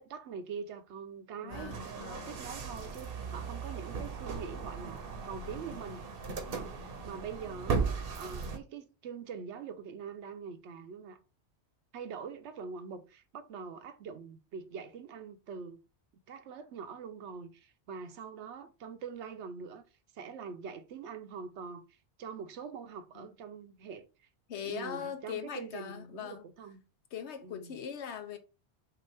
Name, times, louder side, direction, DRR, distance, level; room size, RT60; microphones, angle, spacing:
voice 1, 0.0-11.2 11.9-15.8 16.3-19.8 20.1-24.3 24.6-26.8 27.4-27.8, right 6 dB, 85° right, 1.0 m, -44 dB
voice 2, 1.4-2.4 23.1-23.3 24.5-26.4 27.1-28.4, left 8 dB, 80° left, 1.1 m, -41 dB
sound 1, 1.5-8.6, right 5 dB, 60° right, 0.9 m, -37 dB
5.7 x 2.5 x 3.4 m
omnidirectional pair, 1.1 m